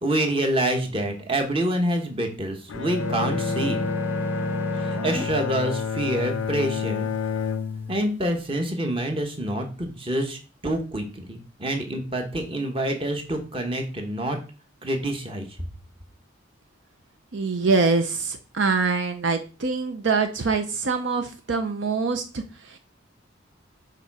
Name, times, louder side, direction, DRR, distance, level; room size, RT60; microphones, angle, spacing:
voice 1, 0.0-3.8 4.7-7.1 7.9-10.4 10.6-14.4 14.8-15.5, right 1 dB, 25° right, 4 dB, 1.2 m, -27 dB
Bowed string instrument, 2.7-8.2, left 6 dB, 90° left, 0.4 m, -29 dB
sound 1, 3.0-5.3, right 2 dB, 10° right, 0.4 m, -31 dB
voice 2, 17.3-22.8, right 4 dB, 70° right, 7 dB, 0.6 m, -24 dB
6.8 x 4.0 x 4.8 m, 0.34 s
head